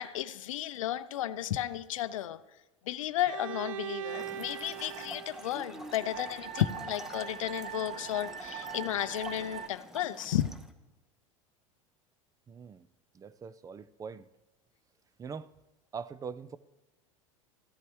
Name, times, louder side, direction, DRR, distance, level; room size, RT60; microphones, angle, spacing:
voice 1, 0.0-2.4 2.9-10.5, left 12 dB, 75° left, 0.5 m, -33 dB
Bowed string instrument, 3.3-7.1, right 10 dB, 75° right, 0.5 m, -42 dB
Trickle dribble / Fill (with liquid), 4.1-10.7, equal, 5° right, 0.8 m, -47 dB
sound 1, 4.2-9.7, right 8 dB, 50° right, 0.9 m, -43 dB
voice 2, 12.5-12.9 13.1-14.3 15.2-15.5 15.9-16.6, right 6 dB, 20° right, 0.4 m, -42 dB
14.5 x 11.0 x 3.1 m
hypercardioid pair, 85°, 17 cm